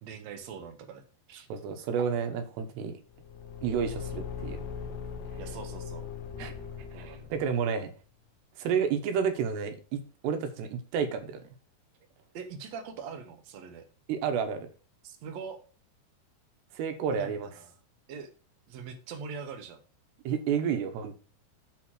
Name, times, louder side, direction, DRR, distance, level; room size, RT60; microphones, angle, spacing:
voice 1, 0.0-1.5 5.4-6.1 6.9-7.3 12.3-13.9 15.0-15.6 17.1-17.7 18.1-18.3 18.7-19.8, right 6 dB, 60° right, 4 dB, 1.9 m, -42 dB
voice 2, 1.5-3.0 3.6-4.6 6.4-6.5 6.9-7.9 8.6-11.4 14.1-14.7 16.7-17.5 20.2-21.1, right 7 dB, 85° right, 6 dB, 3.2 m, -30 dB
Car / Engine, 3.1-7.7, left 7 dB, 85° left, 3.0 m, -39 dB
8.3 x 4.3 x 6.1 m, 0.36 s
omnidirectional pair, 4.7 m